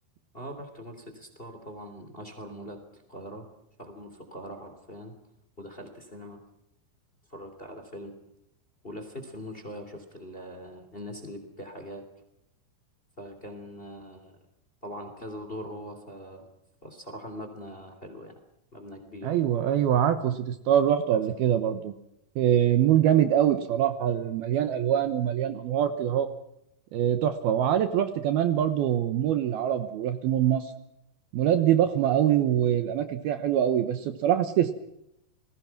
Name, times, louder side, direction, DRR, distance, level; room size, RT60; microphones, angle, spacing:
voice 1, 0.3-3.5 3.8-5.1 5.6-6.4 7.3-8.1 8.8-12.0 13.2-14.4 14.8-16.5 16.8-18.3 18.7-19.4 21.1-21.2, equal, 15° left, 6 dB, 2.7 m, -42 dB
voice 2, 19.2-21.9 22.4-26.3 26.9-30.7 31.3-34.7, right 10 dB, 70° right, 9 dB, 2.7 m, -24 dB
29.5 x 20.5 x 6.0 m, 0.82 s
omnidirectional pair, 5.0 m